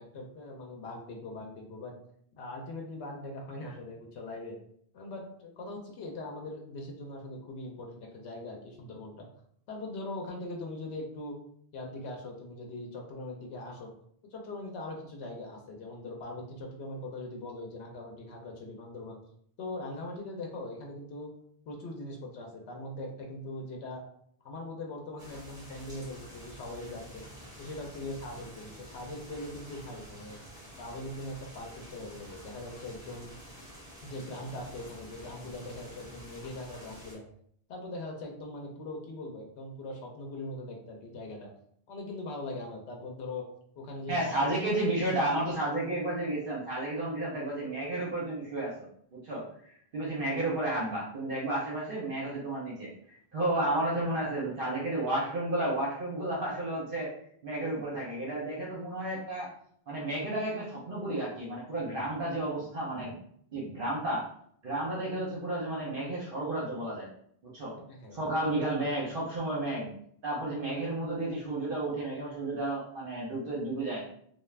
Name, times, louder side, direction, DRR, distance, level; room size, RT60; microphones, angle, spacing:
voice 1, 0.0-1.9 2.4-4.6 4.9-9.3 9.7-11.4 11.7-13.9 14.3-19.2 19.6-21.3 21.7-24.0 24.4-27.3 27.6-30.4 30.7-33.3 34.0-37.2 37.7-41.5 41.9-43.5 43.8-44.6 67.9-68.7, left 2 dB, 80° left, 0 dB, 0.9 m, -41 dB
sound 1, 25.2-37.1, equal, 5° right, 0.9 m, -49 dB
voice 2, 44.1-48.7 49.1-57.1 57.4-59.5 59.9-63.2 63.5-64.3 64.6-67.1 67.5-67.8 68.1-69.9 70.2-74.0, right 1 dB, 60° right, -6 dB, 0.8 m, -32 dB
2.4 x 2.3 x 3.2 m, 0.65 s
omnidirectional pair, 1.1 m